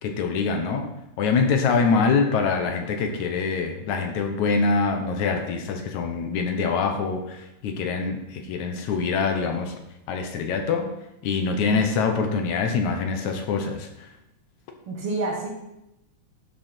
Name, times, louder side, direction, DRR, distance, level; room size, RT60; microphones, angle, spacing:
voice 1, 0.0-0.9 1.2-9.7 10.1-10.9 11.2-14.1, left 5 dB, 75° left, 4 dB, 2.4 m, -24 dB
voice 2, 14.9-15.5, right 2 dB, 55° right, -1 dB, 2.1 m, -29 dB
12.0 x 6.3 x 4.4 m, 0.87 s
omnidirectional pair, 3.5 m